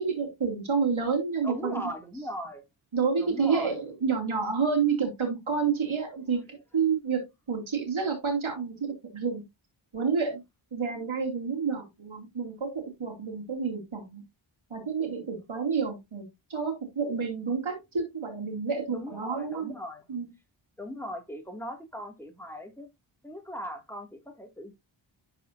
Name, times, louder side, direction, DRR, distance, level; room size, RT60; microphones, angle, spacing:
voice 1, 0.0-1.9 2.9-9.4 9.9-10.4 10.7-14.2 14.7-19.7 20.1-20.3, right 5 dB, 70° right, 2.7 m, -29 dB
voice 2, 1.4-2.6 3.2-3.8 18.9-20.0 20.8-22.9 23.2-24.7, equal, 5° left, 2.3 m, -39 dB
11.5 x 4.2 x 2.6 m
wide cardioid pair, 60°, 50 cm